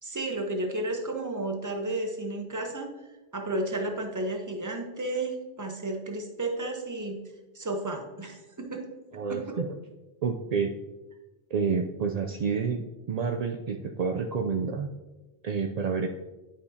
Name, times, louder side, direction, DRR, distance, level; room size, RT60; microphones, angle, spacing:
voice 1, 0.0-2.9 3.3-7.2 7.5-8.8 9.3-9.6, right 2 dB, 20° right, 3 dB, 0.7 m, -32 dB
voice 2, 9.1-9.7 10.2-10.7 11.5-12.8 13.1-14.9 15.4-16.1, right 5 dB, 65° right, 4 dB, 0.4 m, -29 dB
10.5 x 5.0 x 2.8 m, 1.1 s
omnidirectional pair, 1.2 m